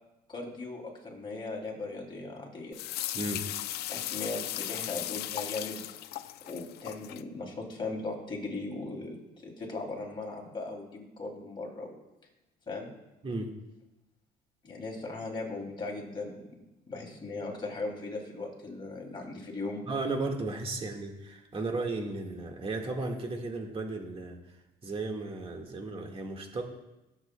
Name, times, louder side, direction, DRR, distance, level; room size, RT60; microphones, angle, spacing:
voice 1, 0.3-2.8 3.9-5.8 6.5-9.2 9.4-11.9 12.7-12.9 14.6-16.3 16.9-19.8, left 3 dB, 30° left, -1 dB, 2.8 m, -38 dB
sound 1, 2.7-7.2, left 14 dB, 75° left, 0.4 m, -37 dB
voice 2, 3.1-3.4 13.2-13.5 19.9-24.4 24.8-26.6, right 2 dB, 35° right, 2 dB, 1.7 m, -34 dB
20.5 x 7.4 x 2.2 m, 0.97 s
cardioid pair, 110°, 17 cm